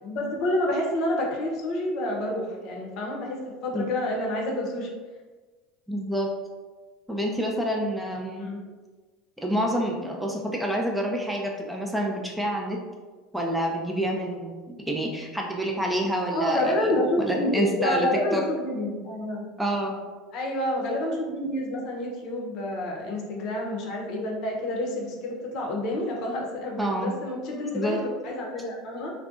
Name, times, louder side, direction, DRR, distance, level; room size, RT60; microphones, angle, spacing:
voice 1, 0.0-4.9 8.4-8.6 16.3-19.5 20.3-29.1, left 1 dB, 60° left, -1 dB, 0.6 m, -28 dB
voice 2, 5.9-6.3 7.1-8.5 9.4-12.8 13.3-16.9 17.2-18.4 19.6-19.9 26.8-27.1 27.7-28.0, equal, 5° right, -1 dB, 0.4 m, -28 dB
2.6 x 2.2 x 2.4 m, 1.3 s
supercardioid pair, 100°, 0 cm